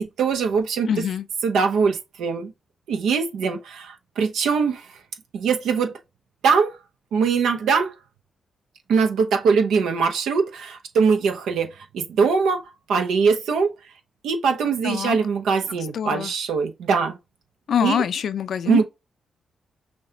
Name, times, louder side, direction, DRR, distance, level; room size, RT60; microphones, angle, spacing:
voice 1, 0.0-0.9 1.4-2.5 2.9-4.9 5.3-6.0 6.4-6.8 7.1-7.9 8.9-12.6 12.9-13.7 14.2-17.2 17.8-18.0 18.7-18.8, right 5 dB, 80° right, 0.7 m, -22 dB
voice 2, 0.9-1.3 14.8-15.2 15.7-16.3 17.7-18.8, left 8 dB, 70° left, 0.4 m, -25 dB
6.2 x 2.3 x 2.8 m
supercardioid pair, 45°, 0 cm